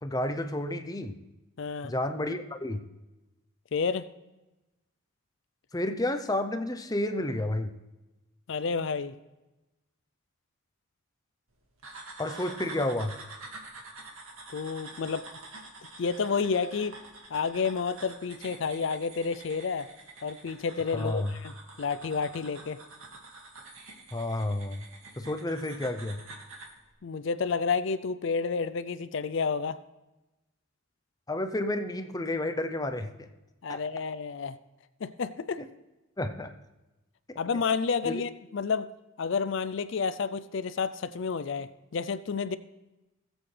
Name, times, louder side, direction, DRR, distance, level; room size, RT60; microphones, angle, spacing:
voice 1, 0.0-1.2 1.8-2.8 5.7-7.7 12.2-13.1 20.9-21.3 24.1-24.8 25.2-26.2 31.3-33.3 33.7-33.8 35.6-35.7 36.2-36.5 38.0-38.2, left 1 dB, 15° left, 8 dB, 0.6 m, -31 dB
voice 2, 1.6-1.9 3.7-4.1 8.5-9.2 14.5-15.3 16.0-17.0 17.3-19.9 20.2-22.8 27.0-29.8 33.6-34.6 35.0-35.6 37.4-38.9 39.2-42.6, left 5 dB, 60° left, 14 dB, 0.4 m, -30 dB
sound 1, 11.8-26.8, right 2 dB, 75° right, 2.1 m, -47 dB
18.0 x 7.9 x 3.3 m, 1.0 s
head